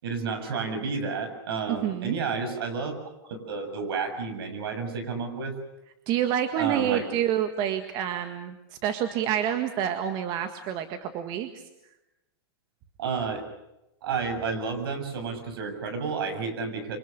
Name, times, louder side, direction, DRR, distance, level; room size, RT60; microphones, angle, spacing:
voice 1, 0.0-2.9 3.2-5.6 6.6-7.1 13.0-13.4 14.0-17.0, right 5 dB, 70° right, 8 dB, 7.1 m, -31 dB
voice 2, 1.7-2.2 6.1-8.6 8.8-11.6, right 10 dB, 35° right, 7 dB, 1.8 m, -28 dB
27.5 x 25.5 x 6.7 m, 0.90 s
supercardioid pair, 150°, 13 cm